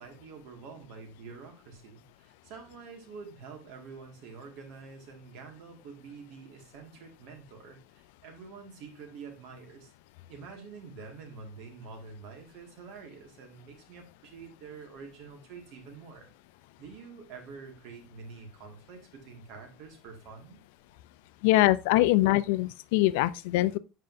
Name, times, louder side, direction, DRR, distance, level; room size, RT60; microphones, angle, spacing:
voice 1, 0.0-9.9 10.3-16.3 16.8-20.6, right 5 dB, 55° right, 2.0 m, -47 dB
voice 2, 21.4-23.8, left 16 dB, 75° left, 0.4 m, -23 dB
7.6 x 5.3 x 2.6 m
cardioid pair, 160°, 0 cm